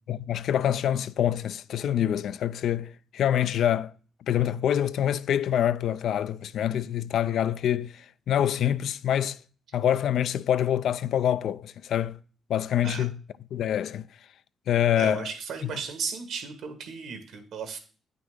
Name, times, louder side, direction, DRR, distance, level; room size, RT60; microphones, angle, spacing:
voice 1, 0.1-3.9 4.3-9.4 9.7-12.2 12.5-13.2 13.5-14.0 14.7-15.3, left 10 dB, 70° left, 0.3 m, -26 dB
voice 2, 15.0-17.8, right 6 dB, 75° right, 1.5 m, -35 dB
8.7 x 5.9 x 3.7 m
cardioid pair, 90°, 0 cm